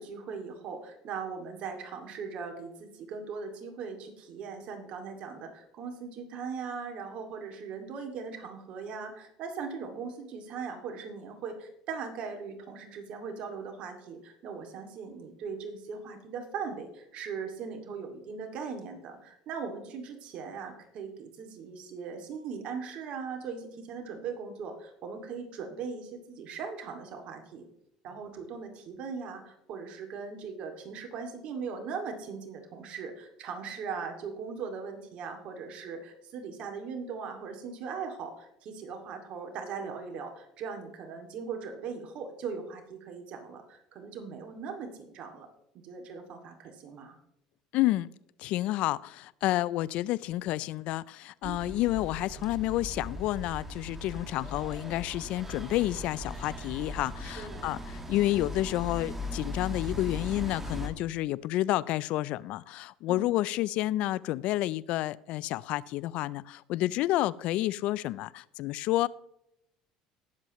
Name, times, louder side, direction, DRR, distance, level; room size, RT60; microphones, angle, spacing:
voice 1, 0.0-27.7 28.0-45.5 45.8-47.2 51.4-51.8 57.2-57.7 63.1-63.3, right 5 dB, 60° right, 4 dB, 2.4 m, -39 dB
voice 2, 47.7-48.1 48.4-69.1, left 16 dB, 65° left, 21 dB, 0.4 m, -30 dB
sound 1, 51.4-60.9, left 1 dB, 15° right, 1.9 m, -39 dB
19.0 x 7.6 x 3.1 m, 0.80 s
supercardioid pair, 90°, 2 cm